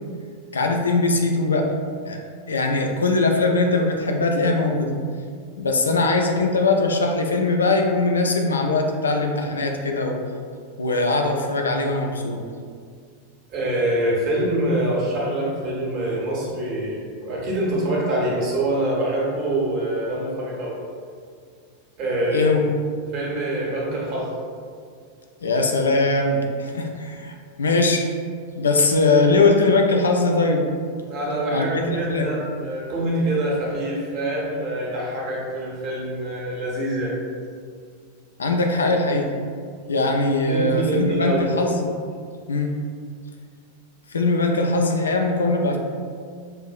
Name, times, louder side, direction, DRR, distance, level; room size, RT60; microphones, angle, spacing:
voice 1, 0.5-1.7 2.1-2.2 2.5-4.9 5.6-10.2 10.8-12.4 22.3-22.7 25.4-28.1 28.5-30.7 31.5-31.8 32.1-32.3 38.4-39.3 39.9-41.9 42.5-42.8 44.1-45.8, left 3 dB, 70° left, 3 dB, 0.4 m, -21 dB
voice 2, 13.5-20.7 22.0-22.5 23.1-24.3 31.1-37.1 40.4-41.5, right 1 dB, 40° right, -4 dB, 1.1 m, -25 dB
5.5 x 2.6 x 2.4 m, 2.1 s
figure-of-eight pair, 90°, 0 cm